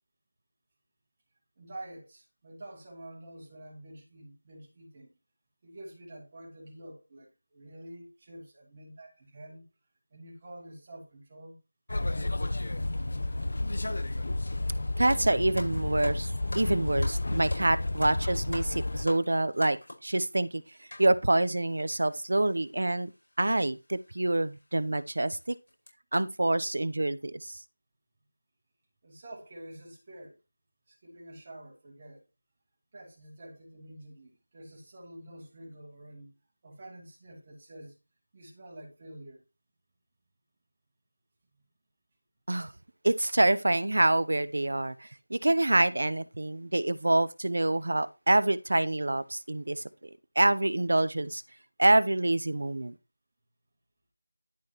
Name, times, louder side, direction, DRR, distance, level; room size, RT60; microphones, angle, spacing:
voice 1, 1.6-5.1 5.6-9.6 10.1-11.6 29.0-30.4 30.9-32.2 32.9-36.3 36.6-38.0 38.3-39.4, right 1 dB, 20° right, 2.9 m, -48 dB
sound 1, 11.9-19.1, left 2 dB, 50° left, 0.8 m, -31 dB
voice 2, 15.0-20.6 21.0-23.1 23.4-25.5 26.1-27.6 42.5-42.7 43.0-49.8 50.4-51.4 51.8-52.9, right 2 dB, 60° right, 0.7 m, -26 dB
sound 2, 15.1-20.1 20.9-21.1 21.8-21.9 22.1-22.3 23.2-23.4 23.9-24.0 24.5-24.6 25.1-25.3 25.7-25.9, left 1 dB, 80° left, 5.5 m, -43 dB
12.0 x 6.1 x 3.0 m
figure-of-eight pair, 175°, 0 cm